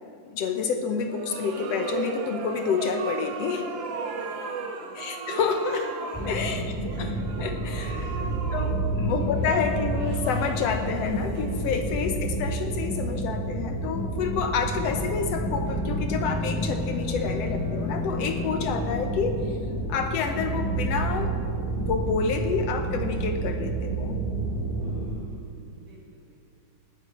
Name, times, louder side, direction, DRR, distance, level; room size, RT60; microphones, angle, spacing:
voice 1, 0.0-3.7 4.7-6.6 7.0-7.1 7.4-8.2 8.5-19.6 19.9-21.3 21.8-24.2, left 6 dB, 75° left, 6 dB, 1.6 m, -29 dB
sound 1, 1.0-12.0, right 5 dB, 80° right, 1.0 m, -37 dB
sound 2, 6.1-25.1, right 2 dB, 10° right, 2.4 m, -29 dB
voice 2, 6.9-7.4 7.9-8.4 9.0-9.4 24.8-26.4, right 3 dB, 60° right, -5 dB, 4.8 m, -47 dB
sound 3, 15.1-19.5, left 5 dB, 30° left, 1.4 m, -35 dB
19.5 x 10.0 x 4.2 m, 2.3 s
omnidirectional pair, 3.6 m